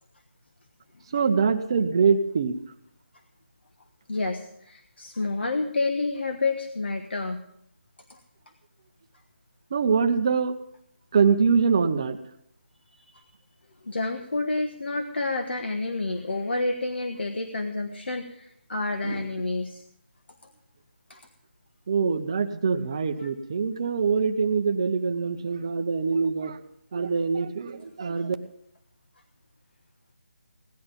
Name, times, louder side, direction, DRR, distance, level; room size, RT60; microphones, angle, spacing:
voice 1, 1.1-2.6 9.7-10.6 11.1-12.2 19.0-19.3 21.9-26.6 26.9-28.3, right 5 dB, 25° right, 7 dB, 0.7 m, -24 dB
voice 2, 4.1-7.4 8.1-8.2 12.9-13.3 13.8-19.8 21.1-21.2, left 3 dB, 60° left, 6 dB, 1.3 m, -29 dB
17.0 x 11.0 x 5.2 m, 0.72 s
figure-of-eight pair, 175°, 6 cm